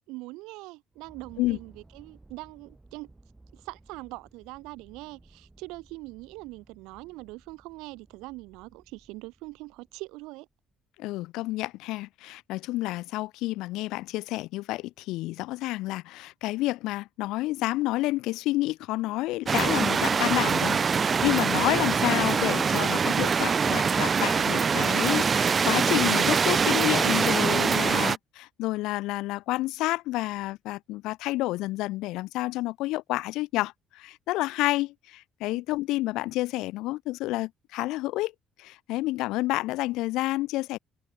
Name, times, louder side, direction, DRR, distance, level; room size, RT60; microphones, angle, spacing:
voice 1, 0.1-3.1 3.5-10.5 35.5-35.6, right 22 dB, 85° right, 2.6 m, -42 dB
sound 1, 0.9-10.5, right 2 dB, 15° right, 5.9 m, -57 dB
voice 2, 11.0-38.3 38.6-40.8, left 18 dB, 80° left, 2.0 m, -29 dB
sound 2, 19.5-28.2, right 6 dB, 35° right, 0.7 m, -24 dB
cardioid pair, 90°, 0 cm